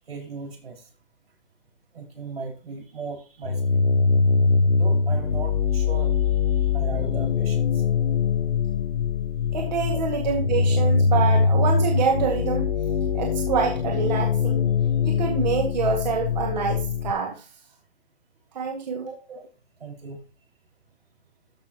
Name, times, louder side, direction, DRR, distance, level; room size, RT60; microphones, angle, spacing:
voice 1, 0.1-0.9 1.9-3.8 4.7-7.8 19.0-19.5 19.8-20.2, right 4 dB, 85° right, 1 dB, 5.5 m, -38 dB
sound 1, 3.4-17.1, left 5 dB, 80° left, 1.0 m, -22 dB
voice 2, 9.5-12.6 13.1-14.7 15.0-17.3 18.6-19.0, right 6 dB, 45° right, 1 dB, 2.0 m, -26 dB
13.5 x 6.6 x 3.0 m, 0.32 s
hypercardioid pair, 165°, 29 cm